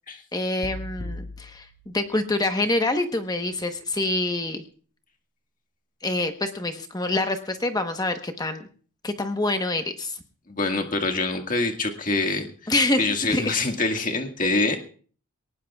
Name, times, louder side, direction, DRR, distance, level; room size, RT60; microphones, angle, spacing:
voice 1, 0.3-4.6 6.0-8.7 9.0-10.2 12.7-13.6, left 2 dB, 15° left, 6 dB, 1.1 m, -26 dB
sound 1, 0.6-2.9, left 1 dB, 55° left, 2.2 m, -39 dB
voice 2, 10.5-12.7 13.0-14.8, left 3 dB, 35° left, 4 dB, 1.8 m, -25 dB
22.0 x 19.0 x 2.4 m, 0.43 s
head